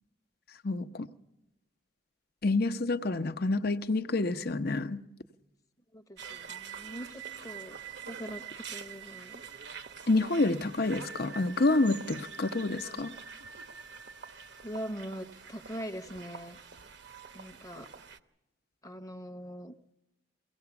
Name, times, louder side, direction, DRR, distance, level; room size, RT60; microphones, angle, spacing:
voice 1, 0.6-1.1 2.4-5.0 10.1-13.1, left 2 dB, 50° left, 0.8 m, -28 dB
voice 2, 5.9-7.8 8.1-9.4 14.6-16.6 17.3-17.9 18.8-19.7, equal, 20° left, 0.9 m, -42 dB
sound 1, 6.2-18.2, right 6 dB, 60° right, 0.9 m, -45 dB
23.0 x 17.0 x 7.0 m
head